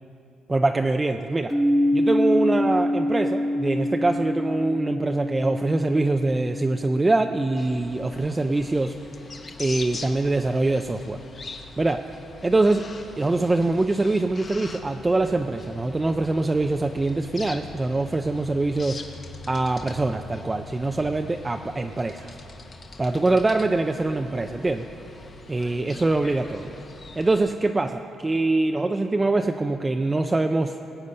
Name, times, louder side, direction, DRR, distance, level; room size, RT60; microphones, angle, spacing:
voice 1, 0.5-1.5 1.9-9.0 9.6-11.2 11.8-12.0 12.4-12.9 13.2-19.0 19.5-22.3 23.0-24.9 25.5-26.8 27.2-30.8, right 2 dB, 20° right, 5 dB, 0.5 m, -24 dB
sound 1, 1.5-9.3, left 1 dB, 5° left, 1.3 m, -27 dB
sound 2, 7.6-27.4, left 3 dB, 40° left, 1.2 m, -42 dB
19.5 x 8.1 x 5.4 m, 2.8 s
cardioid pair, 90°, 0 cm